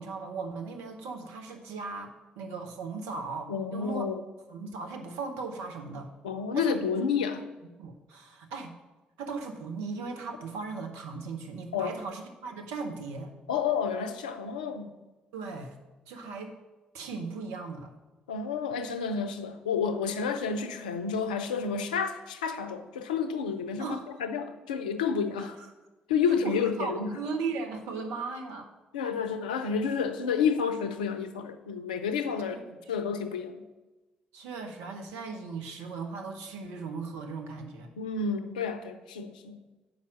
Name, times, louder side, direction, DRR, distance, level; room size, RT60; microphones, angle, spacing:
voice 1, 0.0-4.0 4.5-6.1 6.5-6.7 7.8-8.7 9.2-13.3 15.3-15.8 16.1-16.6 16.9-17.9 23.8-24.1 25.4-25.7 26.4-28.7 32.5-32.6 34.3-37.9, right 4 dB, 65° right, 4 dB, 0.9 m, -37 dB
voice 2, 3.5-4.2 6.2-7.4 11.7-12.0 13.5-15.0 18.3-25.6 26.1-27.2 28.9-33.6 38.0-39.6, left 6 dB, 80° left, 9 dB, 0.5 m, -30 dB
7.7 x 5.6 x 6.2 m, 1.1 s
figure-of-eight pair, 45°, 4 cm